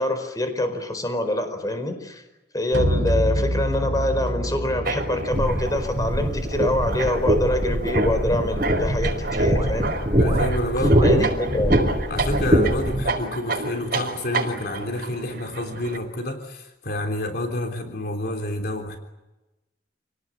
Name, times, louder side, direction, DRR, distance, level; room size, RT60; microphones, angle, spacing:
voice 1, 0.0-2.2 2.5-9.9 11.0-11.8, left 1 dB, 20° left, 8 dB, 4.7 m, -25 dB
sound 1, 2.7-6.7, equal, 70° right, 4.8 m, -27 dB
sound 2, 4.8-16.0, right 3 dB, 55° right, 5.6 m, -31 dB
sound 3, 5.3-13.0, equal, 30° right, 6.5 m, -22 dB
voice 2, 10.2-11.3 12.1-19.0, left 1 dB, 55° left, 4 dB, 3.6 m, -29 dB
29.0 x 19.0 x 9.9 m, 1.0 s
head